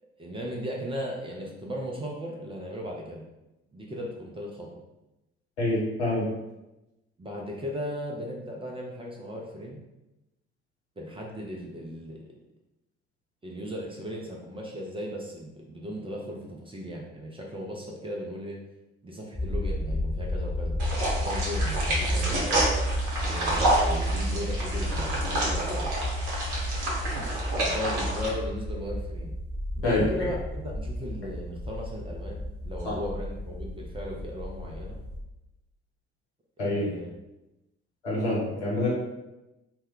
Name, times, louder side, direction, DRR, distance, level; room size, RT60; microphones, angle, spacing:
voice 1, 0.2-3.2 3.7-4.8 7.2-9.8 11.0-12.2 13.4-18.6 19.0-20.8 21.2-22.6 23.2-25.9 27.6-29.3 29.8-35.0 36.6-37.1, equal, 15° right, -2 dB, 0.4 m, -37 dB
voice 2, 5.6-6.2 29.8-30.1 32.8-32.9 36.6-36.9 38.0-38.9, left 2 dB, 75° left, -6 dB, 1.0 m, -26 dB
sound 1, 19.3-35.2, equal, 15° left, 1.0 m, -32 dB
sound 2, 20.8-28.3, right 1 dB, 60° right, 0.9 m, -29 dB
2.1 x 2.1 x 3.6 m, 0.97 s
figure-of-eight pair, 45°, 34 cm